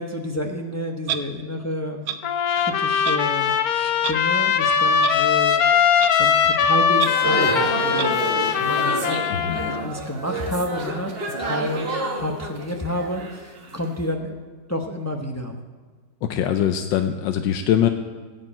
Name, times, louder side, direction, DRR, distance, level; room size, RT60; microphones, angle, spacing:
voice 1, 0.0-2.1 2.6-5.9 6.2-9.2 9.6-11.9 12.1-14.4 14.7-15.5, left 1 dB, 20° left, 2 dB, 0.5 m, -30 dB
Clock, 1.1-1.2 2.1-2.2 3.0-3.2 4.0-4.1 5.0-5.1 6.0-6.1 7.0-7.1 8.0-8.1, right 10 dB, 85° right, 1.4 m, -27 dB
Trumpet, 2.2-9.8, left 7 dB, 65° left, 1.1 m, -20 dB
sound 1, 7.0-14.0, right 2 dB, 35° right, 1.2 m, -29 dB
voice 2, 9.3-9.6 16.2-17.9, left 10 dB, 85° left, 7 dB, 1.4 m, -22 dB
15.0 x 5.2 x 8.6 m, 1.5 s
omnidirectional pair, 1.9 m